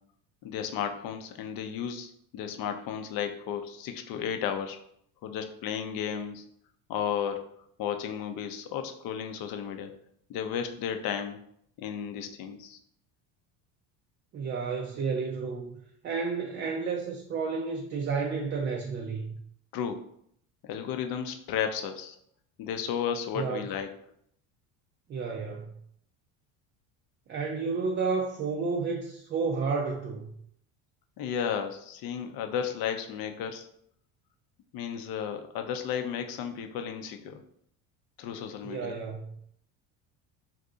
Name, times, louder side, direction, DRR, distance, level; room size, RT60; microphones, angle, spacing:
voice 1, 0.4-4.8 5.2-6.4 6.9-7.4 7.8-9.9 10.3-11.4 11.8-12.8 19.7-20.0 20.6-22.2 22.6-23.9 31.2-33.7 34.7-37.4 38.2-39.0, left 8 dB, 55° left, 6 dB, 0.6 m, -33 dB
voice 2, 14.3-15.8 16.0-19.4 23.4-23.7 25.1-25.7 27.3-30.3 38.6-39.4, right 4 dB, 30° right, 1 dB, 0.3 m, -31 dB
2.6 x 2.6 x 3.6 m, 0.70 s
supercardioid pair, 105°, 42 cm